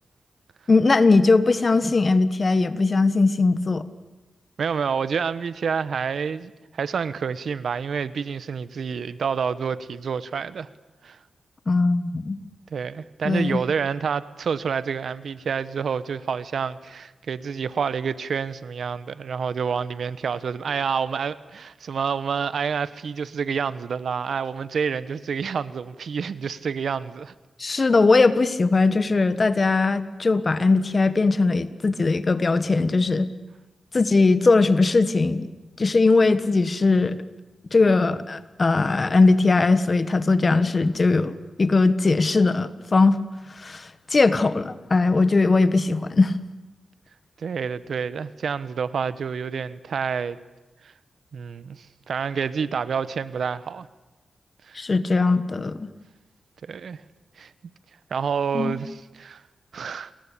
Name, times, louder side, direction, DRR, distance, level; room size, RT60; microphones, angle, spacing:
voice 1, 0.7-3.8 11.7-12.4 13.2-13.6 27.6-33.3 33.9-35.5 35.8-37.2 37.7-43.2 43.6-46.4 54.7-55.9 58.5-58.8, left 3 dB, 40° left, 1.5 m, -20 dB
voice 2, 4.6-10.7 11.0-11.2 12.7-27.3 27.7-27.9 47.4-50.4 50.8-50.9 51.3-53.9 54.7-54.8 56.6-57.0 57.4-57.5 58.1-59.4 59.7-60.1, right 6 dB, 80° right, 1.1 m, -28 dB
29.0 x 22.0 x 8.6 m
cardioid pair, 80°, 0 cm